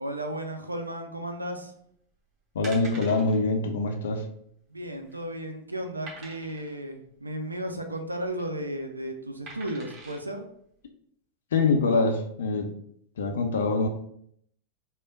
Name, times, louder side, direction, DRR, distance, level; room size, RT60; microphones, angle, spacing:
voice 1, 0.0-1.7 4.7-10.5, right 1 dB, 80° right, 5 dB, 0.5 m, -34 dB
sound 1, 2.0-2.2 2.6-3.4 3.7-3.9 4.1-4.2 4.8-5.3 6.1-6.7 8.1-8.4 9.5-10.2 10.8-10.9, right 2 dB, 30° right, 1.1 m, -44 dB
voice 2, 2.5-4.2 11.5-12.7 13.2-13.9, left 3 dB, 60° left, 4 dB, 0.5 m, -24 dB
3.4 x 2.2 x 3.8 m, 0.68 s
figure-of-eight pair, 90°, 0 cm